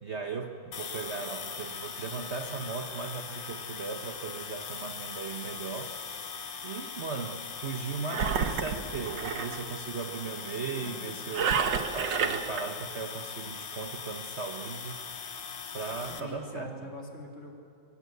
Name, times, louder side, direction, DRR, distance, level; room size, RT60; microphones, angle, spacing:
voice 1, 0.0-6.0 6.6-11.6 11.9-15.0 15.7-16.8, right 5 dB, 45° right, 5 dB, 1.2 m, -37 dB
sound 1, 0.7-16.2, left 6 dB, 65° left, 2.0 m, -40 dB
Engine, 8.1-9.6 11.3-12.6, right 6 dB, 80° right, 1.9 m, -29 dB
voice 2, 10.8-11.3 16.2-17.6, left 1 dB, 40° left, 0 dB, 3.4 m, -45 dB
26.0 x 23.0 x 8.1 m, 2.4 s
omnidirectional pair, 1.9 m